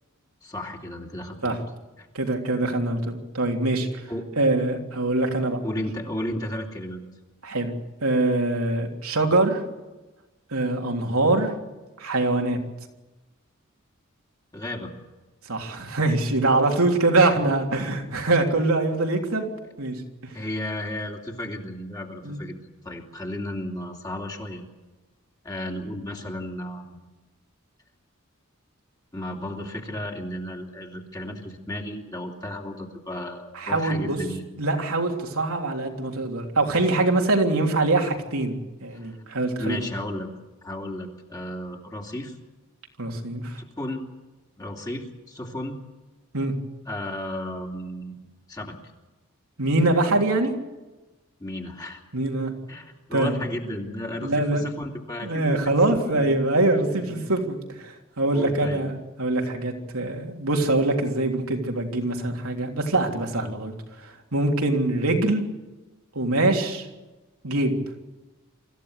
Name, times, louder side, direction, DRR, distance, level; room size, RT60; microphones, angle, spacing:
voice 1, 0.4-1.6 2.0-2.1 4.1-4.3 5.6-7.0 14.5-14.9 20.3-22.6 22.8-24.6 25.4-27.0 29.1-34.5 38.9-39.2 39.6-40.3 40.6-42.4 43.8-44.0 44.6-45.8 46.9-48.1 48.5-48.8 51.4-52.0 52.7-55.8 56.0-56.3 56.8-57.3 58.3-58.8, left 1 dB, 20° left, 0 dB, 2.8 m, -34 dB
voice 2, 2.1-3.9 4.4-5.6 7.4-7.7 8.0-9.6 10.5-11.5 12.0-12.6 15.5-19.5 19.8-19.9 20.2-20.3 22.2-22.4 33.5-34.2 34.6-39.8 43.0-43.6 46.3-46.5 49.6-50.5 52.1-52.5 53.1-53.3 54.2-54.6 55.2-63.7 64.0-65.4 66.1-66.9 67.4-67.8, right 2 dB, 90° right, 2 dB, 3.4 m, -23 dB
25.0 x 15.0 x 8.3 m, 1.1 s
head